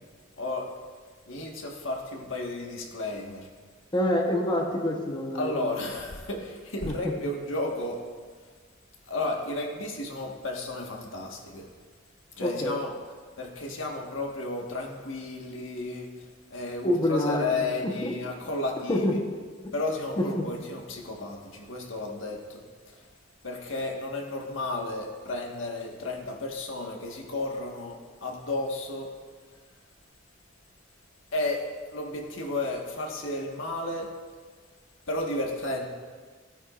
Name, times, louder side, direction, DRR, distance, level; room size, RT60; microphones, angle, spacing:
voice 1, 0.4-0.7 1.3-3.5 5.3-8.0 9.1-11.7 12.4-12.9 13.4-16.1 16.5-19.1 19.7-22.6 22.9-23.0 23.4-29.1 31.3-34.1 35.1-35.9, left 2 dB, 85° left, 0 dB, 1.5 m, -33 dB
voice 2, 3.9-5.7 6.8-7.1 12.4-12.8 16.8-17.4 17.8-18.1 18.9-19.2 19.6-19.7 20.2-20.4, left 1 dB, 25° left, 0 dB, 1.0 m, -27 dB
15.5 x 9.2 x 2.5 m, 1.5 s
head